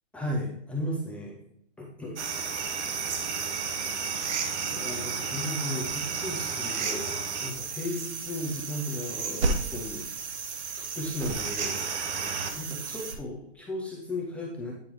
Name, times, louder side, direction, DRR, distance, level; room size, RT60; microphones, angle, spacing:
voice 1, 0.1-1.4 1.8-2.2 4.7-10.0 10.8-11.8 12.5-14.7, left 1 dB, 5° left, -4 dB, 0.5 m, -35 dB
sound 1, 2.2-13.1, right 5 dB, 70° right, 1.1 m, -32 dB
8.6 x 5.0 x 3.1 m, 0.75 s
hypercardioid pair, 145°, 35 cm